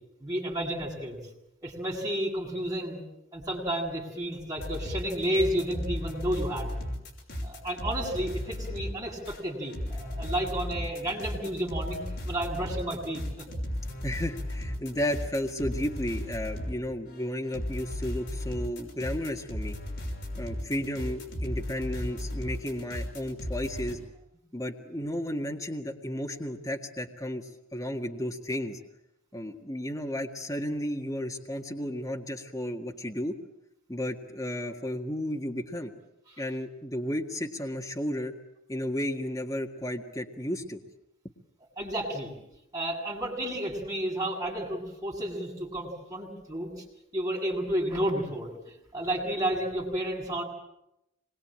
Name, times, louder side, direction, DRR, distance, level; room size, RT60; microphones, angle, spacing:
voice 1, 0.2-1.2 1.6-3.0 3.3-6.7 7.4-13.4 41.8-42.3 42.7-46.8 47.1-50.4, right 1 dB, 15° right, -3 dB, 7.8 m, -31 dB
sound 1, 4.6-16.8 17.1-23.9, left 1 dB, 55° left, 6.2 m, -35 dB
voice 2, 14.0-19.8 20.4-24.0 24.5-28.8 29.3-33.4 33.9-35.9 36.4-38.3 38.7-40.8, left 1 dB, 15° left, 2 dB, 1.8 m, -33 dB
26.0 x 22.0 x 8.9 m, 0.86 s
head